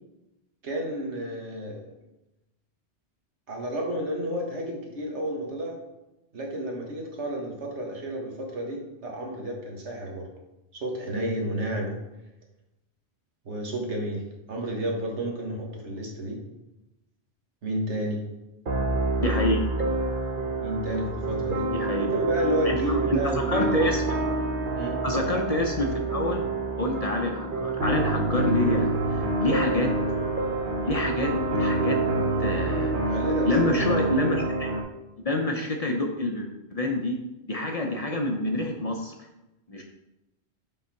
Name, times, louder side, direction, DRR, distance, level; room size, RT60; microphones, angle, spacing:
voice 1, 0.6-1.9 3.5-5.8 6.3-10.3 10.7-12.0 13.4-16.4 17.6-18.2 20.6-21.7 22.0-23.8 24.7-25.0 33.1-33.8, right 1 dB, 80° right, 0 dB, 1.6 m, -31 dB
sound 1, 18.7-34.8, right 2 dB, 50° right, 1.0 m, -27 dB
voice 2, 19.2-19.6 21.7-22.1 22.6-23.2 23.5-24.0 25.0-26.5 26.8-29.9 30.8-32.0 32.4-33.1 33.5-34.7 35.2-37.2 37.5-39.1 39.7-39.8, left 1 dB, 40° left, 2 dB, 0.6 m, -27 dB
5.4 x 3.9 x 5.7 m, 0.96 s
omnidirectional pair, 1.1 m